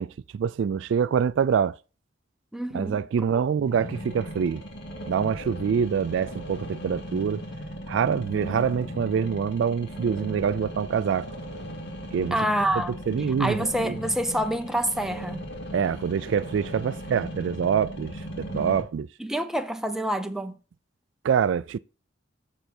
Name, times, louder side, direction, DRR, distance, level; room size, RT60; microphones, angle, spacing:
voice 1, 0.0-1.8 2.7-4.6 5.1-7.4 7.9-11.3 12.1-12.4 13.1-13.6 13.8-14.0 15.7-19.1 21.2-21.8, right 7 dB, 70° right, 0.3 m, -25 dB
voice 2, 2.5-3.0 7.9-8.0 12.3-13.0 13.4-15.4 19.2-20.6, right 1 dB, 5° right, 0.6 m, -27 dB
sound 1, 3.6-18.8, equal, 65° left, 2.3 m, -37 dB
6.8 x 6.5 x 4.3 m
head